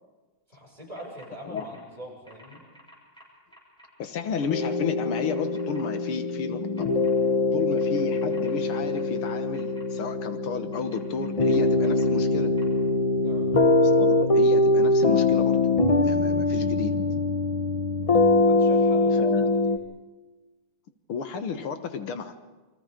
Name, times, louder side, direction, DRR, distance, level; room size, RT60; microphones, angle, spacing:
voice 1, 0.5-2.6 13.2-13.5 18.4-19.8, equal, 15° right, -2 dB, 7.0 m, -43 dB
sound 1, 0.9-1.3 1.5-1.8 2.2-3.9 4.4-4.7 5.1-5.8 6.7-7.1 7.7-9.8 10.7-12.0 12.6-12.7, equal, ahead, 7.0 m, -52 dB
voice 2, 4.0-6.9 7.5-12.5 13.8-15.7 16.0-17.3 19.2-19.5 21.1-22.4, left 6 dB, 85° left, 8 dB, 2.2 m, -33 dB
sound 2, 4.5-19.8, left 2 dB, 45° left, 0.4 m, -23 dB
29.5 x 24.0 x 5.1 m, 1.2 s
omnidirectional pair, 2.3 m